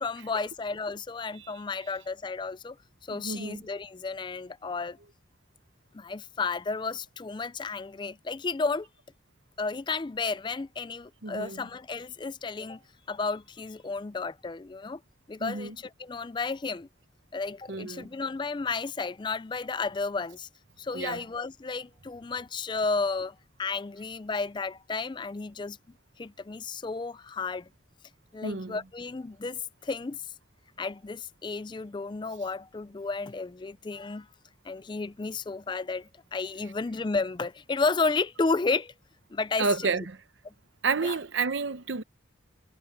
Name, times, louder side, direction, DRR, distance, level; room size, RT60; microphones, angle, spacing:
voice 1, 0.0-2.8 3.0-5.0 5.9-8.9 9.6-12.8 13.1-15.0 15.3-16.9 17.3-20.5 20.8-25.8 26.2-27.7 28.3-30.2 30.8-34.3 34.6-38.9 39.3-40.0 40.4-40.5 41.0-41.2, left 4 dB, 25° left, 0.4 m, -32 dB
voice 2, 3.1-3.6 11.2-11.6 15.4-15.8 17.7-18.1 20.9-21.2 28.4-28.8 39.6-40.2 40.8-42.0, right 4 dB, 75° right, 0.8 m, -30 dB
head